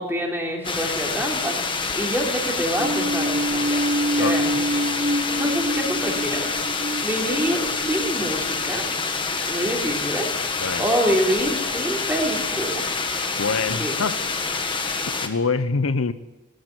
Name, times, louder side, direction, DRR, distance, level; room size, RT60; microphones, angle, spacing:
voice 1, 0.0-1.6 1.9-3.8 4.2-6.6 7.0-8.8 9.5-10.3 10.8-13.0 13.7-13.9, equal, 10° right, 3.7 m, -26 dB
sound 1, 0.6-15.3, left 4 dB, 25° left, 1.5 m, -27 dB
sound 2, 2.8-9.2, right 1 dB, 35° right, 0.7 m, -27 dB
voice 2, 4.2-4.6 10.6-10.9 13.4-14.2 15.2-16.1, left 4 dB, 85° left, 0.8 m, -25 dB
19.5 x 14.5 x 9.7 m
head